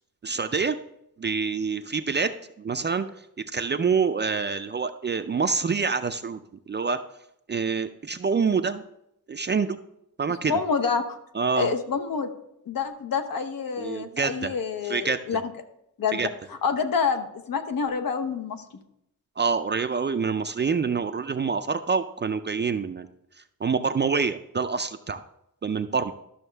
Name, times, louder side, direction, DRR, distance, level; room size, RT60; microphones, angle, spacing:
voice 1, 0.2-0.8 1.2-3.1 3.5-6.4 6.7-7.0 7.5-8.8 9.3-9.8 10.2-10.6 11.3-11.7 13.8-14.5 14.8-15.4 16.1-16.3 19.4-23.1 23.6-25.2 25.6-26.1, right 5 dB, 30° right, 9 dB, 0.4 m, -26 dB
voice 2, 10.5-11.2 11.6-12.3 12.7-15.4 16.0-16.2 16.6-18.6, left 5 dB, 70° left, 7 dB, 0.9 m, -27 dB
12.5 x 6.3 x 3.3 m, 0.80 s
wide cardioid pair, 125°, 35 cm